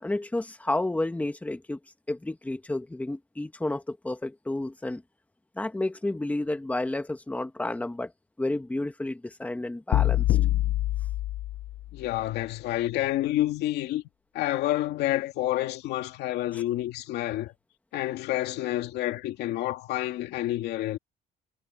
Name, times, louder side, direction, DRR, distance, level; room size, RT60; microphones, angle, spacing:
voice 1, 0.0-1.8 2.1-5.0 5.6-8.1 8.4-10.4 16.5-16.6, left 2 dB, 10° left, 1.5 m, -31 dB
sound 1, 9.9-12.0, left 15 dB, 60° left, 0.5 m, -25 dB
voice 2, 11.9-14.0 14.3-17.5 17.9-21.0, left 14 dB, 80° left, 2.3 m, -29 dB
cardioid pair, 110°, 17 cm